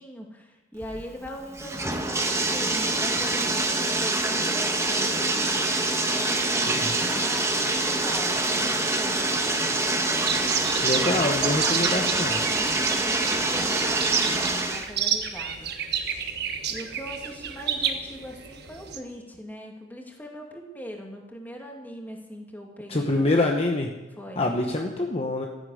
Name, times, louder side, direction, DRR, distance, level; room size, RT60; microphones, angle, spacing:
voice 1, 0.0-10.1 10.9-12.0 12.4-15.7 16.7-23.5 24.2-24.5, equal, 10° left, 1 dB, 2.4 m, -40 dB
Bathtub (filling or washing), 0.8-14.9, right 2 dB, 15° right, 1.3 m, -25 dB
sound 1, 10.2-19.0, right 7 dB, 60° right, 1.4 m, -30 dB
voice 2, 10.8-12.4 22.9-23.9 24.4-25.5, left 2 dB, 35° left, 2 dB, 1.1 m, -25 dB
13.5 x 10.5 x 7.9 m, 1.1 s
head